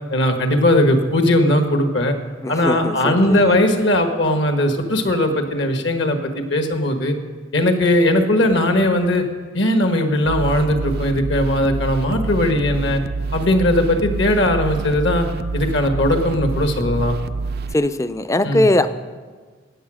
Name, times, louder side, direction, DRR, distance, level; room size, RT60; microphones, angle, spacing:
voice 1, 0.1-2.1 2.5-7.1 7.5-9.2 9.5-13.0 13.3-15.3 15.5-17.1 18.5-18.6, left 1 dB, 65° left, 6 dB, 1.5 m, -18 dB
voice 2, 2.4-3.6 17.7-18.9, left 1 dB, 15° left, 12 dB, 0.4 m, -20 dB
sound 1, 10.2-17.7, right 4 dB, 50° right, 0.4 m, -27 dB
16.5 x 8.8 x 6.3 m, 1.5 s
head